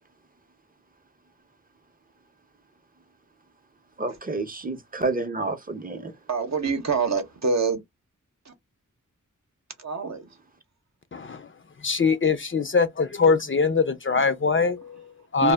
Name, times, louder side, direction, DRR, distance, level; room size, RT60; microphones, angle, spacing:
voice 1, 4.0-6.1, right 3 dB, 25° right, 0.6 m, -29 dB
voice 2, 6.3-7.8 9.8-10.2 15.4-15.5, right 4 dB, 60° right, 0.8 m, -25 dB
voice 3, 11.1-11.5 11.8-15.5, left 5 dB, 40° left, 0.4 m, -23 dB
2.1 x 2.1 x 3.3 m
wide cardioid pair, 65°, 32 cm